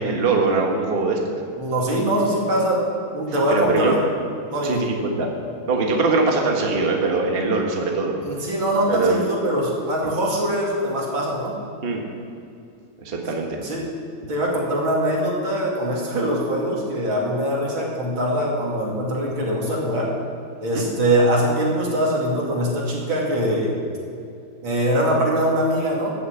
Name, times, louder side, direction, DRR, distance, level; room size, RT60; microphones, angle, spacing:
voice 1, 0.0-1.3 3.5-4.0 4.6-5.3 5.7-8.1 8.9-9.2 11.8-12.0 13.0-13.6 20.7-20.8, right 3 dB, 30° right, 1 dB, 1.4 m, -22 dB
voice 2, 1.6-2.8 3.1-4.0 4.5-4.8 8.2-11.5 13.6-13.9 14.3-20.1 20.6-23.7 24.6-26.1, right 1 dB, 80° right, -3 dB, 3.4 m, -22 dB
13.5 x 7.1 x 8.2 m, 2.4 s
omnidirectional pair, 2.2 m